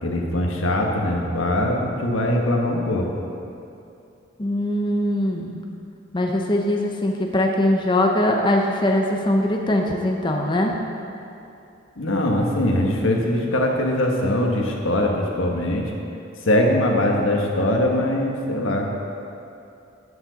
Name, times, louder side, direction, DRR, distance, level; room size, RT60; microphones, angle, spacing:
voice 1, 0.0-3.1 12.0-15.9 16.4-18.9, left 1 dB, 85° left, 1 dB, 1.3 m, -22 dB
voice 2, 4.4-5.6 6.1-10.8, left 1 dB, 25° left, 1 dB, 0.7 m, -21 dB
12.5 x 7.0 x 4.0 m, 2.7 s
head